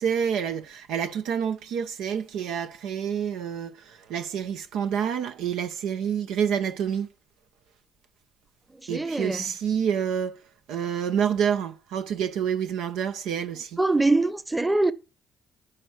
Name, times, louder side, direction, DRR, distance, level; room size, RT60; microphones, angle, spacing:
voice 1, 0.0-7.1 8.9-10.4 10.7-13.8, right 8 dB, 80° right, 0.8 m, -28 dB
voice 2, 8.7-9.4 13.8-14.9, right 2 dB, 15° right, 1.0 m, -23 dB
10.0 x 5.1 x 7.8 m
supercardioid pair, 60°, 0 cm